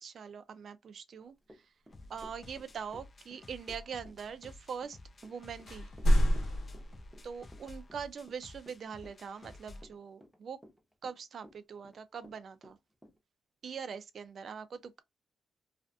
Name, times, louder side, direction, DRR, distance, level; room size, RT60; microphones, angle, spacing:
voice 1, 0.0-1.4 2.1-5.9 7.2-10.6 11.0-12.8 13.6-15.0, right 6 dB, 60° right, 0.4 m, -43 dB
Run / Walk footsteps, 1.5-13.2, equal, 10° right, 0.7 m, -56 dB
sound 1, 1.9-9.9, left 2 dB, 35° left, 0.4 m, -53 dB
sound 2, 2.0-3.1 4.0-4.8 5.1-5.2 5.5-7.5, equal, 75° left, 0.9 m, -30 dB
2.5 x 2.5 x 2.2 m
cardioid pair, 95°, 0 cm